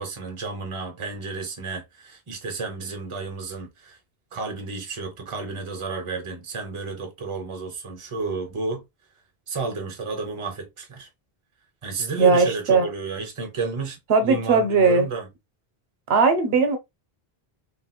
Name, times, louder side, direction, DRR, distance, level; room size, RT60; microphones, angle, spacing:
voice 1, 0.0-4.0 4.3-8.8 9.5-11.1 11.8-15.3, right 4 dB, 35° right, 0.8 m, -32 dB
voice 2, 12.2-12.9 14.1-15.1 16.1-16.8, right 4 dB, 75° right, 0.9 m, -18 dB
3.1 x 2.8 x 2.2 m
omnidirectional pair, 1.0 m